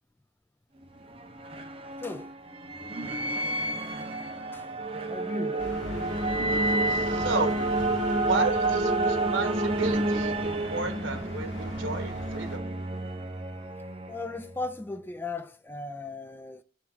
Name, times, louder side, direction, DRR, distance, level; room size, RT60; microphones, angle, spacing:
sound 1, 0.8-14.6, right 2 dB, 30° right, 0.7 m, -29 dB
voice 1, 2.0-2.3 4.5-4.7 5.1-5.7 14.1-16.6, left 3 dB, 10° left, 0.3 m, -37 dB
sound 2, 5.6-12.6, left 1 dB, 75° left, 1.8 m, -42 dB
voice 2, 6.9-7.8 8.1-12.7, right 3 dB, 90° right, 1.2 m, -33 dB
6.1 x 3.8 x 4.4 m
head